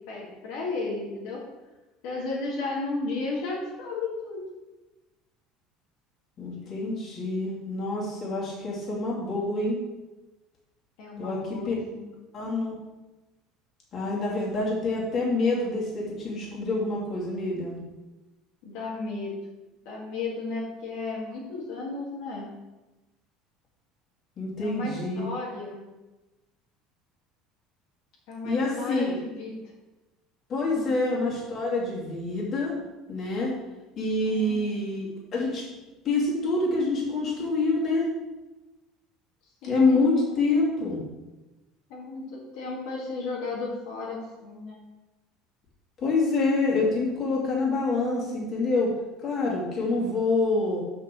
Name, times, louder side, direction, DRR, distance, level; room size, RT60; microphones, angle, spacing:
voice 1, 0.1-1.4 2.0-4.4 11.0-12.1 18.6-19.3 19.9-22.5 24.6-25.9 28.3-29.7 30.7-30.9 34.2-34.9 39.6-40.6 41.9-44.8, left 3 dB, 70° left, -3 dB, 2.0 m, -34 dB
voice 2, 6.4-9.8 11.2-11.7 12.3-12.8 13.9-17.8 24.4-25.3 28.4-29.2 30.5-32.7 33.1-33.5 34.0-35.6 36.0-38.1 39.6-41.0 46.0-48.9 49.2-50.8, left 3 dB, 35° left, -5 dB, 2.5 m, -26 dB
6.4 x 5.1 x 6.1 m, 1.1 s
cardioid pair, 155°, 0 cm